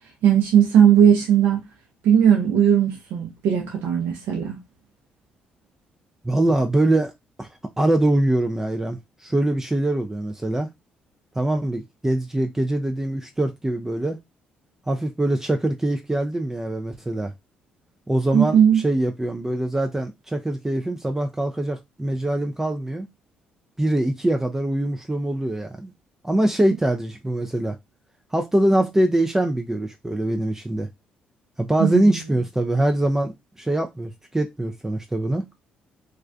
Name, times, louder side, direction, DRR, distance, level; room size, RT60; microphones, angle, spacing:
voice 1, 0.2-1.6 2.0-4.6 18.3-18.8 31.8-32.1, right 8 dB, 75° right, 0.6 m, -17 dB
voice 2, 6.2-7.1 7.4-7.5 7.8-10.7 11.4-14.2 14.9-17.3 18.1-23.1 23.8-25.9 26.2-27.8 28.3-30.9 31.6-35.5, right 1 dB, 15° right, 0.3 m, -23 dB
2.4 x 2.1 x 2.4 m
supercardioid pair, 65°, 3 cm